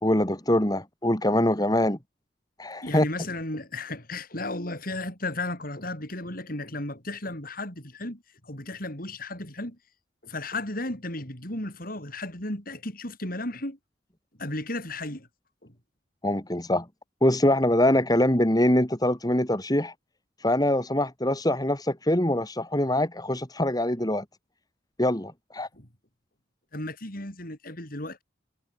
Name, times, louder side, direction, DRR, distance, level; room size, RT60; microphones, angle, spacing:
voice 1, 0.0-2.0 2.6-3.1 16.2-16.9 17.2-19.9 20.4-24.3 25.0-25.7, left 1 dB, 20° left, 3.4 m, -24 dB
voice 2, 2.8-9.8 10.2-13.8 14.4-15.3 15.6-15.7 25.7-25.9 26.7-28.2, left 2 dB, 50° left, 7.2 m, -34 dB
head